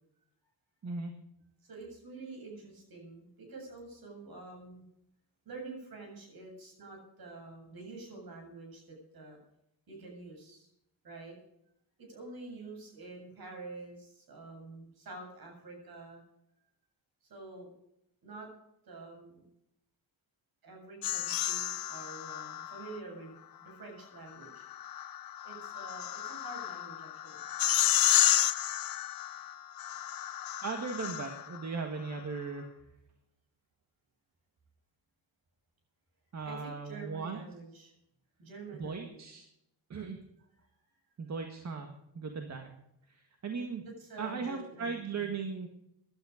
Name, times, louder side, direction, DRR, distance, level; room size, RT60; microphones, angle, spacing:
voice 1, 1.6-4.8 5.5-9.4 9.9-10.7 11.0-11.4 12.0-16.2 17.3-17.7 18.2-18.5 18.8-19.4 20.6-24.7 25.4-27.4 36.4-37.9 38.4-39.2 44.0-45.4, right 3 dB, 55° right, 2 dB, 7.6 m, -47 dB
sound 1, 21.0-23.0 24.4-31.6, left 12 dB, 50° left, 0.6 m, -31 dB
voice 2, 30.6-32.6 36.3-37.4 38.7-39.4 39.9-40.2 41.2-42.8 43.1-43.8 44.2-45.7, right 5 dB, 40° right, 4 dB, 1.8 m, -38 dB
16.5 x 12.0 x 5.1 m, 0.80 s
wide cardioid pair, 150°, 44 cm